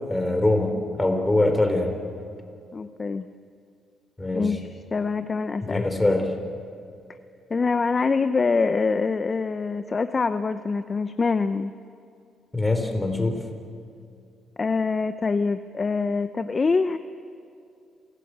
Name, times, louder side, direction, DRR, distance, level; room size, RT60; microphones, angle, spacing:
voice 1, 0.0-1.9 4.2-4.6 5.6-6.3 12.5-13.4, left 2 dB, 15° left, 5 dB, 3.6 m, -23 dB
voice 2, 2.7-3.3 4.3-6.3 7.5-11.7 14.6-17.0, left 4 dB, 35° left, 10 dB, 0.7 m, -25 dB
28.0 x 16.5 x 8.0 m, 2.5 s
cardioid pair, 90°, 0 cm